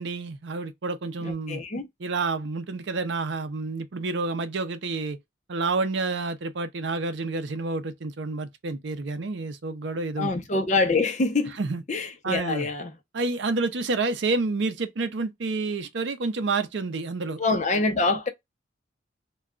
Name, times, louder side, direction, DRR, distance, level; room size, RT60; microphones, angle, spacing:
voice 1, 0.0-1.6 2.0-5.2 5.5-10.3 11.6-11.8 12.2-12.7 13.1-17.4, right 3 dB, 70° right, 0.5 m, -29 dB
voice 2, 1.2-1.9 10.2-11.6 11.9-12.9 17.4-18.3, left 3 dB, 35° left, 0.6 m, -25 dB
2.3 x 2.2 x 3.6 m
head